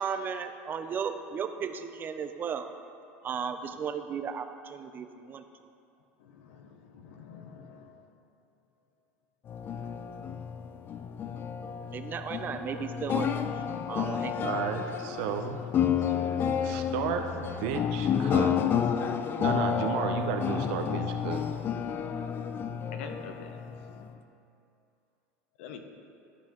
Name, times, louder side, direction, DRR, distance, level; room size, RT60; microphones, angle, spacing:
voice 1, 0.0-2.7 3.2-5.4 11.9-13.4 13.9-14.5, right 6 dB, 30° right, 8 dB, 0.5 m, -35 dB
voice 2, 6.2-8.1 22.0-24.1 25.6-25.8, left 6 dB, 80° left, 6 dB, 0.7 m, -47 dB
sound 1, 9.5-24.2, left 8 dB, 35° left, 0.3 m, -30 dB
voice 3, 14.0-18.6 19.4-21.5, right 8 dB, 70° right, 6 dB, 0.6 m, -34 dB
11.5 x 5.5 x 3.0 m, 2.6 s
supercardioid pair, 115°, 6 cm